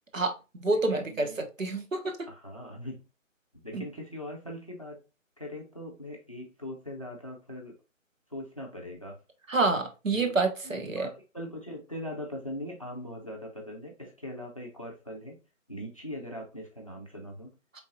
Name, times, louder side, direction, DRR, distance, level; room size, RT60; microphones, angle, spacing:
voice 1, 0.1-2.1 3.7-3.9 9.5-11.1, right 3 dB, 75° right, 1.0 m, -28 dB
voice 2, 0.7-1.4 2.3-3.0 3.5-5.0 5.4-7.8 8.3-9.2 10.1-10.4 10.6-15.4 15.7-17.5, equal, 25° left, 0.6 m, -41 dB
4.2 x 3.6 x 2.6 m
figure-of-eight pair, 150°, 40 cm